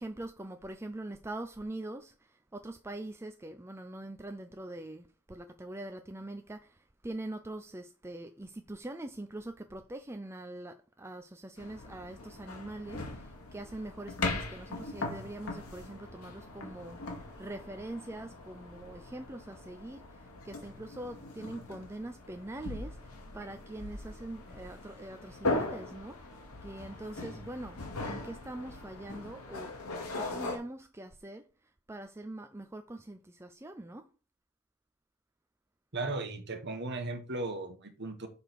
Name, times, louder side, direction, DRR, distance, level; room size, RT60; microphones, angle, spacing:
voice 1, 0.0-29.7 30.0-34.1, right 1 dB, 10° right, 0.5 m, -43 dB
sound 1, 11.6-30.6, left 2 dB, 80° left, 2.4 m, -40 dB
voice 2, 35.9-38.3, right 2 dB, 50° right, 1.4 m, -36 dB
6.8 x 4.9 x 6.0 m
head